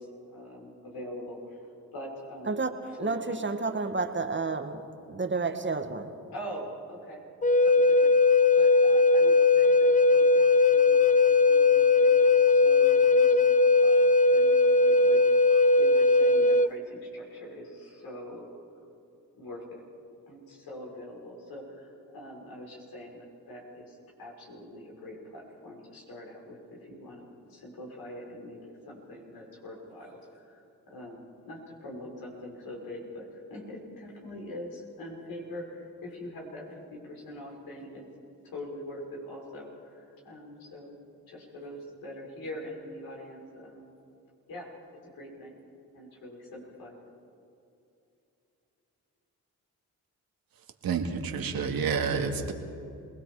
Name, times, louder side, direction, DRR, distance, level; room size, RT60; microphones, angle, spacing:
voice 1, 0.0-3.2 6.3-7.2 7.6-8.1 8.5-11.2 11.5-12.1 12.4-15.2 15.8-18.5 19.4-19.8 20.3-38.0 38.4-41.0 41.3-43.9 44.5-44.7 45.1-45.6 45.9-47.0, left 1 dB, 75° left, -2 dB, 6.3 m, -43 dB
voice 2, 2.5-4.8 5.1-6.1, right 4 dB, 30° right, 7 dB, 1.9 m, -30 dB
Wind instrument woodwind instrument, 7.4-16.7, left 3 dB, 20° left, 0.7 m, -20 dB
voice 3, 50.8-52.5, right 5 dB, 70° right, 3 dB, 2.3 m, -29 dB
27.5 x 20.0 x 5.0 m, 2.7 s
supercardioid pair, 50°, 36 cm